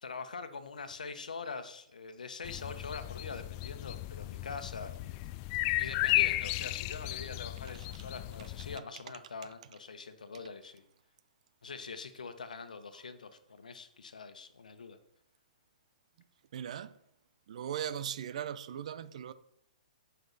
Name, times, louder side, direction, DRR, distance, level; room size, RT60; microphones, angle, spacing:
voice 1, 0.0-5.3 5.8-10.9 11.6-15.0, left 4 dB, 80° left, 1.2 m, -44 dB
sound 1, 2.4-8.8, left 18 dB, 35° left, 0.3 m, -34 dB
voice 2, 16.5-17.0 17.5-19.3, right 9 dB, 60° right, 0.7 m, -38 dB
15.5 x 5.7 x 4.1 m
hypercardioid pair, 125°, 4 cm